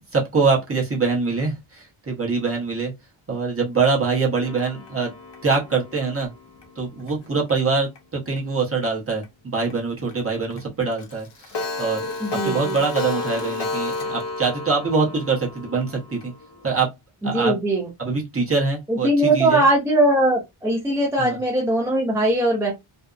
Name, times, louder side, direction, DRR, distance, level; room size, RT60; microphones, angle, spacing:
voice 1, 0.1-2.9 3.3-5.1 5.4-6.3 6.8-16.3 16.6-16.9 17.2-17.6 18.0-19.6 21.2-21.4, right 4 dB, 30° right, 0.8 m, -24 dB
Clock, 4.4-7.5 7.9-8.0 8.4-8.5 8.8-8.9 9.2-9.3 9.7-9.8 10.1-10.2 10.5-10.6 10.9-16.8, left 3 dB, 60° left, 0.7 m, -32 dB
voice 2, 12.2-12.8 17.2-17.9 18.9-22.7, right 1 dB, 5° right, 0.5 m, -20 dB
2.7 x 2.0 x 2.3 m
wide cardioid pair, 150°, 49 cm